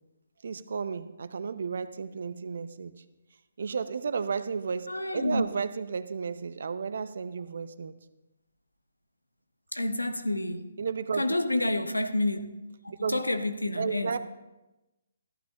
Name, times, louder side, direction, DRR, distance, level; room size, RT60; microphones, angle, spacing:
voice 1, 0.4-2.9 3.6-7.9 10.8-11.3 13.0-13.2 13.8-14.2, right 5 dB, 60° right, 0.6 m, -33 dB
voice 2, 4.9-5.4 9.7-10.7 11.2-12.4 12.8-14.1, left 1 dB, 90° left, 0.9 m, -29 dB
14.0 x 11.5 x 2.9 m
figure-of-eight pair, 140°, 0 cm